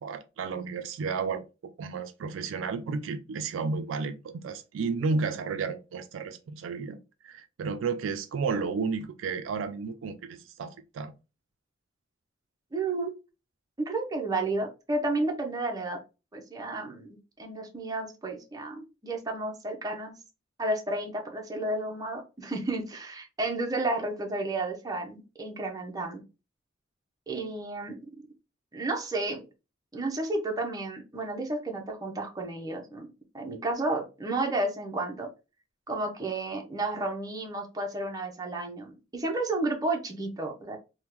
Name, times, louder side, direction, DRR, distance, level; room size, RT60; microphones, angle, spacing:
voice 1, 0.0-1.4 1.8-7.0 7.2-11.1, right 4 dB, 70° right, 0.3 m, -32 dB
voice 2, 12.7-13.1 13.8-16.0 16.3-20.1 20.6-26.2 27.3-28.0 28.7-29.5 29.9-33.1 33.3-35.3 35.9-40.8, right 2 dB, 20° right, 0.6 m, -32 dB
3.5 x 2.1 x 2.9 m
head